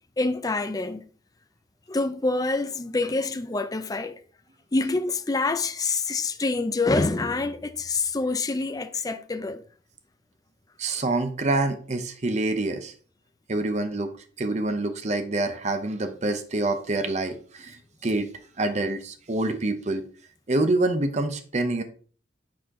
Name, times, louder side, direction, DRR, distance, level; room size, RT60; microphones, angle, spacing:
voice 1, 0.2-1.1 1.9-4.2 4.7-9.6, left 3 dB, 20° left, 0.4 m, -26 dB
voice 2, 10.8-12.9 13.5-14.1 14.4-18.3 18.6-20.0 20.5-21.8, right 2 dB, 35° right, 0.7 m, -26 dB
7.6 x 4.3 x 3.7 m
head